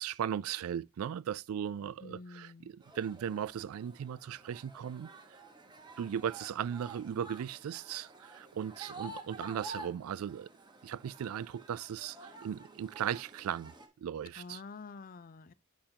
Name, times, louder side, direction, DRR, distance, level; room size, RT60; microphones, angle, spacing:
voice 1, 0.0-5.1 6.0-10.5 10.8-14.6, right 9 dB, 70° right, 0.3 m, -37 dB
voice 2, 2.0-2.7 14.4-15.5, left 4 dB, 40° left, 0.5 m, -48 dB
sound 1, 2.8-13.9, right 2 dB, 20° right, 1.2 m, -50 dB
8.9 x 5.7 x 2.8 m
head